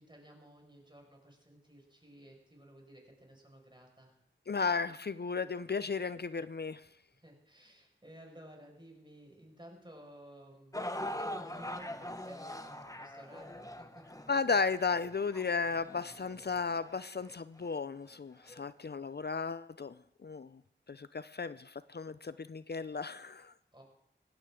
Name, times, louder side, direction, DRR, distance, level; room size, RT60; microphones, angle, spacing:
voice 1, 0.0-4.2 7.2-14.1 23.7-23.8, right 1 dB, 25° right, 1 dB, 5.3 m, -55 dB
voice 2, 4.5-6.8 14.3-20.0 20.2-20.6 20.9-23.5, left 5 dB, 55° left, 15 dB, 0.5 m, -34 dB
sound 1, 10.7-17.0 17.6-17.7 18.5-18.6, left 1 dB, 15° left, 1.2 m, -42 dB
19.0 x 16.5 x 3.7 m, 0.72 s
wide cardioid pair, 40°, 20 cm